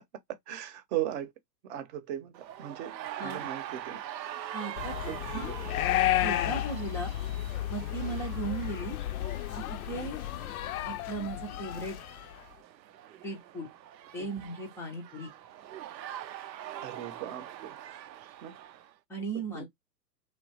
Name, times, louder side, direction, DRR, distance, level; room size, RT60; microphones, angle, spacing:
voice 1, 0.5-1.3 1.6-2.9 3.2-4.0 5.1-5.5 16.8-17.7 18.4-18.6 19.2-19.3 19.5-19.6, right 12 dB, 40° right, 0.8 m, -37 dB
sound 1, 2.3-18.9, right 11 dB, 85° right, 0.6 m, -44 dB
voice 2, 4.5-5.5 6.2-7.1 7.7-9.0 9.6-10.2 10.8-12.0 13.2-13.7 14.1-15.3 19.1-19.6, right 3 dB, 5° left, 0.4 m, -37 dB
sound 2, 4.8-12.4, left 13 dB, 60° left, 0.5 m, -32 dB
3.0 x 2.1 x 2.7 m
hypercardioid pair, 110°, 50 cm